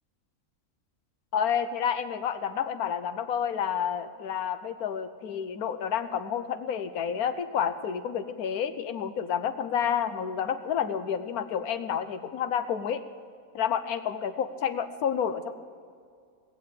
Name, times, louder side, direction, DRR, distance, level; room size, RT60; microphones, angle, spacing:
voice 1, 1.3-13.0 13.5-15.5, left 8 dB, 85° left, 9 dB, 1.3 m, -29 dB
19.5 x 7.7 x 8.3 m, 2.2 s
omnidirectional pair, 1.5 m